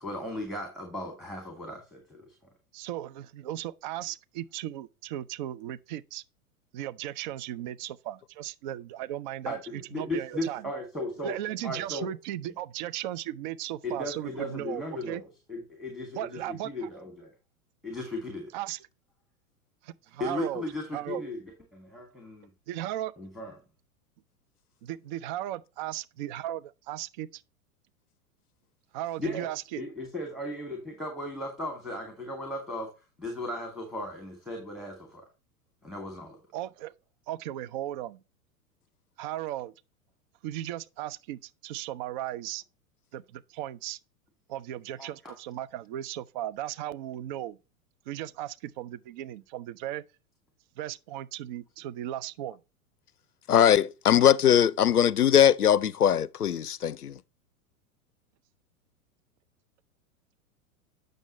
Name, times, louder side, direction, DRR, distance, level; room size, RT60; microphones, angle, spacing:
voice 1, 0.0-2.3 9.5-11.4 11.6-12.1 13.8-17.3 17.8-18.5 20.2-21.4 21.7-22.5 23.2-23.5 29.2-29.5 29.8-32.9 33.2-35.2 35.8-36.4 45.0-45.3, left 1 dB, ahead, 2.3 m, -36 dB
voice 2, 2.7-6.2 6.7-10.7 11.2-15.2 16.2-16.9 18.5-18.9 19.8-20.6 20.9-21.2 22.7-23.1 24.8-27.4 28.9-29.8 36.5-36.9 37.3-38.2 39.2-39.7 40.4-42.6 43.1-44.0 44.5-47.6 48.1-50.0 50.8-52.6, right 13 dB, 35° right, 0.4 m, -36 dB
voice 3, 53.5-57.2, left 9 dB, 90° left, 0.5 m, -21 dB
9.0 x 6.5 x 3.1 m
figure-of-eight pair, 95°, 44 cm